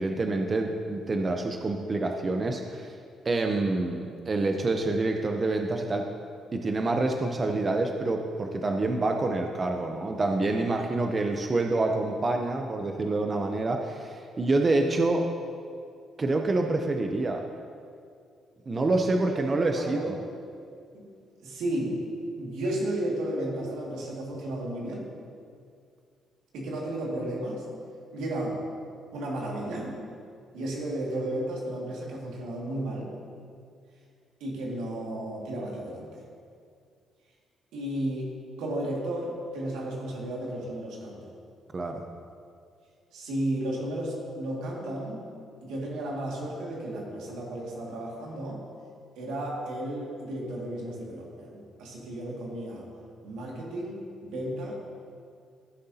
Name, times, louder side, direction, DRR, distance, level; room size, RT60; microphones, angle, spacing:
voice 1, 0.0-2.9 3.2-6.0 6.5-15.3 16.2-17.5 18.7-20.1 41.7-42.0, right 2 dB, 35° right, 4 dB, 0.7 m, -27 dB
voice 2, 19.8-20.1 20.9-21.1 21.4-22.0 22.4-25.1 26.5-27.7 28.1-28.6 29.1-30.0 30.5-33.1 34.4-36.2 37.7-41.3 43.1-45.3 45.6-48.6 49.2-52.9 53.2-54.7, right 1 dB, 90° right, -3 dB, 2.0 m, -33 dB
15.5 x 6.6 x 2.8 m, 2.3 s
cardioid pair, 85°, 0 cm